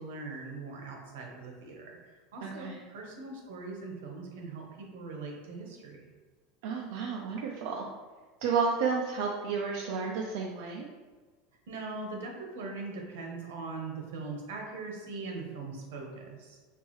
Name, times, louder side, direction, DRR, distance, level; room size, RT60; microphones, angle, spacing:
voice 1, 0.0-6.1 11.7-16.6, right 3 dB, 90° right, 0 dB, 1.1 m, -41 dB
voice 2, 2.4-2.8 6.6-7.9 8.4-10.9, right 5 dB, 70° right, -1 dB, 0.5 m, -31 dB
4.6 x 3.3 x 3.1 m, 1.4 s
supercardioid pair, 135°, 0 cm